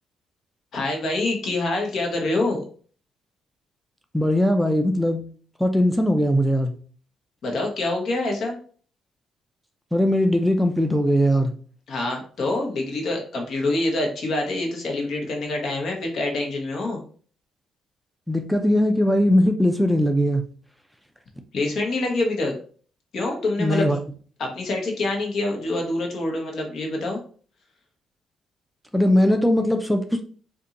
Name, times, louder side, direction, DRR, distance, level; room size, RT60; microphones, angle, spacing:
voice 1, 0.7-2.6 7.4-8.6 11.9-17.0 21.5-22.6 23.1-23.9 24.4-27.2, left 2 dB, 65° left, 1 dB, 1.1 m, -26 dB
voice 2, 4.1-5.2 5.6-6.7 9.9-11.5 18.3-20.4 23.6-24.0 28.9-30.2, equal, ahead, 5 dB, 0.4 m, -20 dB
4.0 x 2.6 x 2.5 m, 0.44 s
cardioid pair, 90°, 0 cm